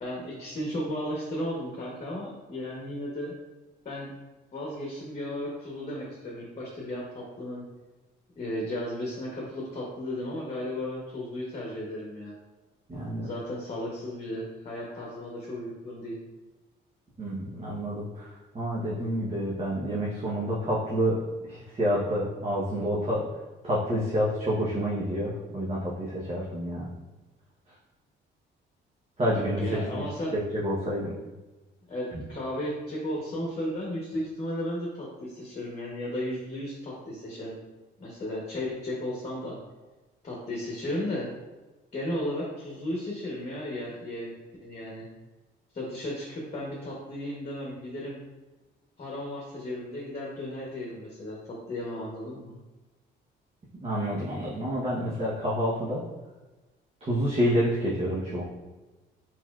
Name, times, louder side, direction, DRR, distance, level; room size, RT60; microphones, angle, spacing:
voice 1, 0.0-3.3 3.8-4.1 4.5-7.6 8.4-12.3 13.2-16.2 29.3-30.3 31.9-37.5 38.0-39.6 40.2-41.3 41.9-44.3 44.6-45.1 45.7-48.2 49.0-52.5, left 1 dB, 35° left, -3 dB, 1.0 m, -34 dB
voice 2, 12.9-13.3 17.2-23.2 23.6-26.9 29.2-30.0 30.3-31.1 53.8-56.0 57.0-58.4, equal, 30° right, -6 dB, 0.9 m, -28 dB
4.3 x 4.1 x 2.4 m, 1.2 s
cardioid pair, 90°, 20 cm